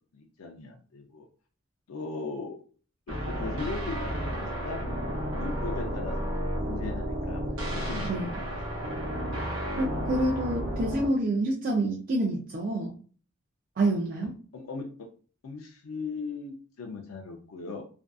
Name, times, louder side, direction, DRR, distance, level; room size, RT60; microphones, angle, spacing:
voice 1, 0.1-1.3 1.9-2.6 3.1-4.9 5.4-6.2 6.6-7.4 7.7-8.4 8.7-9.1 14.5-14.9 15.4-17.8, left 4 dB, 80° left, 2 dB, 0.4 m, -38 dB
sound 1, 3.1-11.1, equal, 70° right, 0.7 m, -32 dB
voice 2, 9.8-12.9 13.8-14.3, right 1 dB, 45° right, -2 dB, 0.4 m, -27 dB
2.5 x 2.3 x 2.3 m, 0.40 s
head